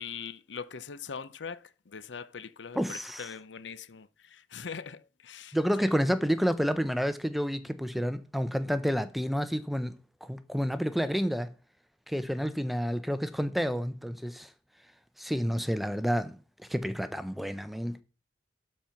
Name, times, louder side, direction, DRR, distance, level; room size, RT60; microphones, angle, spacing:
voice 1, 0.0-5.6 5.8-6.0, left 6 dB, 85° left, 0.7 m, -42 dB
voice 2, 2.7-3.3 5.5-11.5 12.1-14.5 15.2-16.4 16.7-18.0, equal, ahead, 0.6 m, -29 dB
12.0 x 4.5 x 5.8 m
head